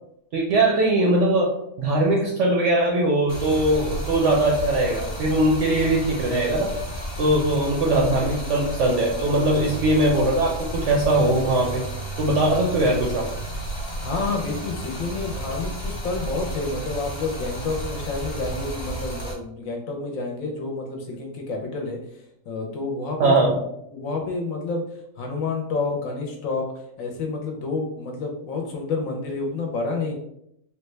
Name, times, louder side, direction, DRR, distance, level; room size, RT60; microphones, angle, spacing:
voice 1, 0.3-6.7 7.2-11.8 12.2-13.3 23.2-23.6, right 1 dB, 65° right, -1 dB, 0.7 m, -21 dB
Stream, 3.3-19.3, right 1 dB, 45° left, 0.6 m, -32 dB
voice 2, 14.0-22.0 22.5-23.4 23.9-24.8 25.2-26.6 27.0-30.1, left 3 dB, 70° left, 1 dB, 0.9 m, -29 dB
3.4 x 2.2 x 3.1 m, 0.77 s
omnidirectional pair, 1.7 m